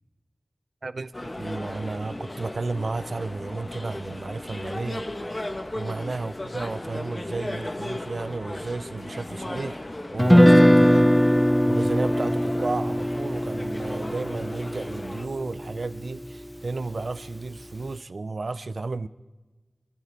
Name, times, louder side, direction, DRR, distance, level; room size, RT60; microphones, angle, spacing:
voice 1, 0.8-5.0 5.7-9.8 10.1-11.1 11.6-19.1, right 3 dB, 80° right, 0.5 m, -33 dB
sound 1, 1.1-15.3, left 1 dB, 35° left, 1.5 m, -36 dB
Guitar, 10.2-16.3, equal, ahead, 0.5 m, -20 dB
22.5 x 13.5 x 4.3 m
wide cardioid pair, 55°, 0 cm